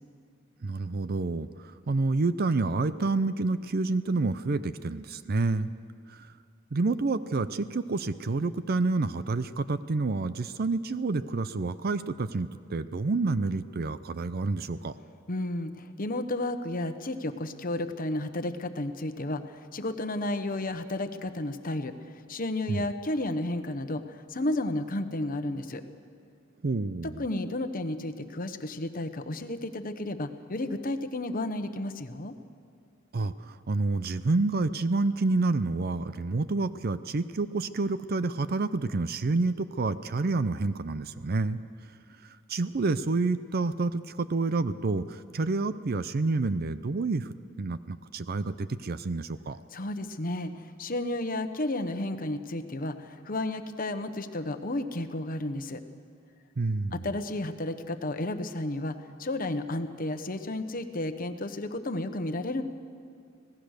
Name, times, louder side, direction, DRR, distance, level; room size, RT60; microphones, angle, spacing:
voice 1, 0.6-5.7 6.1-6.3 6.7-14.9 22.7-22.8 26.6-27.2 33.1-41.6 42.2-49.6 56.6-57.1, right 3 dB, 50° right, 13 dB, 0.6 m, -29 dB
voice 2, 15.3-21.9 22.3-25.8 27.0-32.3 49.7-55.8 56.9-62.6, left 1 dB, 45° left, 9 dB, 1.1 m, -32 dB
26.0 x 17.5 x 6.6 m, 2.4 s
head